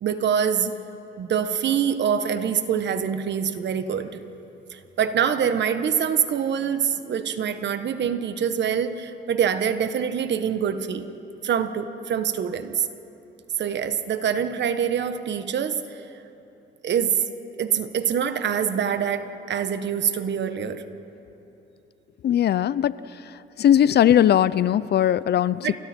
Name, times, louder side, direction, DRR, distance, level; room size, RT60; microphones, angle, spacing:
voice 1, 0.0-0.7 1.2-4.3 4.7-11.1 11.4-12.9 13.6-16.0 16.8-17.2 17.6-20.8 25.6-25.8, right 8 dB, 65° right, 10 dB, 1.4 m, -25 dB
voice 2, 22.2-22.9 23.6-25.8, left 10 dB, 55° left, 18 dB, 0.5 m, -19 dB
29.0 x 28.5 x 4.5 m, 3.0 s
cardioid pair, 90°, 20 cm